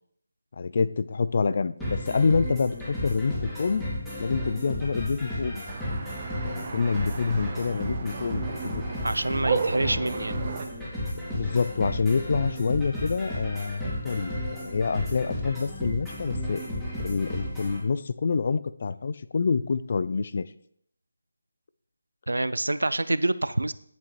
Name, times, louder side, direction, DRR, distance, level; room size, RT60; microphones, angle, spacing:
voice 1, 0.5-3.8 4.2-5.6 6.4-8.8 11.3-16.6 17.0-20.5, left 5 dB, 45° left, 15 dB, 0.4 m, -27 dB
sound 1, 1.8-17.8, left 1 dB, 5° left, 3.0 m, -33 dB
sound 2, 5.7-10.6, right 4 dB, 35° right, 1.1 m, -33 dB
voice 2, 9.0-10.4 22.3-23.7, right 2 dB, 80° right, 15 dB, 0.5 m, -26 dB
10.5 x 8.1 x 3.3 m, 0.69 s
figure-of-eight pair, 155°, 0 cm